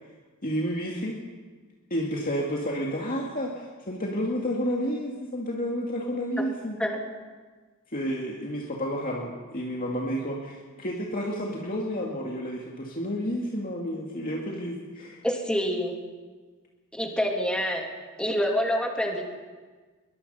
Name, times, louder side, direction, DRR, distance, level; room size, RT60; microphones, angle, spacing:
voice 1, 0.4-1.2 1.9-6.8 7.9-15.2, equal, 40° left, -2 dB, 2.3 m, -30 dB
voice 2, 15.2-16.0 16.9-17.9 18.2-19.2, equal, 5° left, 1 dB, 2.8 m, -26 dB
22.0 x 21.5 x 5.7 m, 1.4 s
head